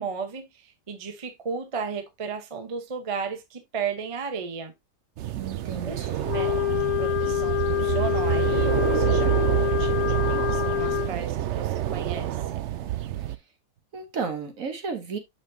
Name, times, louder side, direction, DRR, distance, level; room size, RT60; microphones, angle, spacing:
voice 1, 0.0-4.7 5.8-6.0 6.3-6.5 6.8-12.7, right 5 dB, 25° right, 0.8 m, -34 dB
sound 1, 5.2-13.4, right 13 dB, 80° right, 0.6 m, -27 dB
voice 2, 5.3-6.3 13.9-15.2, right 5 dB, 55° right, 1.3 m, -33 dB
Wind instrument woodwind instrument, 6.3-11.1, left 15 dB, 55° left, 1.1 m, -26 dB
6.4 x 5.9 x 2.7 m
omnidirectional pair, 1.8 m